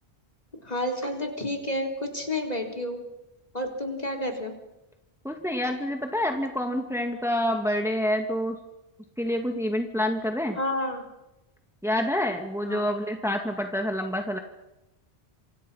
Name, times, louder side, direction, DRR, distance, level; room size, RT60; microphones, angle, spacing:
voice 1, 0.6-3.0 3.5-4.5 10.6-11.1 12.6-12.9, left 1 dB, 40° left, 5 dB, 4.0 m, -30 dB
voice 2, 5.2-8.6 9.2-10.6 11.8-14.4, left 1 dB, 5° right, 4 dB, 2.1 m, -27 dB
27.5 x 26.0 x 5.7 m, 0.95 s
omnidirectional pair, 1.1 m